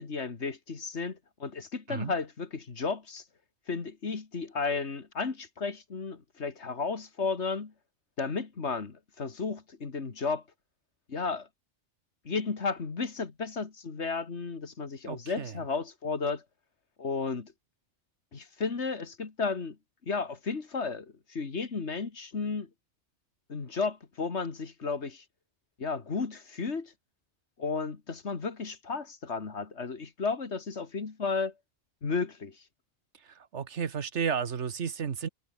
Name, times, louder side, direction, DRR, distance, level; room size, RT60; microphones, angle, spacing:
voice 1, 0.0-3.2 3.7-7.7 8.2-10.4 11.1-11.5 12.3-16.4 17.0-17.5 18.3-19.8 20.1-22.7 23.5-25.2 25.8-26.9 27.6-31.5 32.0-32.6, left 4 dB, 75° left, 2.3 m, -33 dB
voice 2, 15.1-15.5 33.5-35.3, right 7 dB, 75° right, 1.5 m, -32 dB
omnidirectional pair, 1.2 m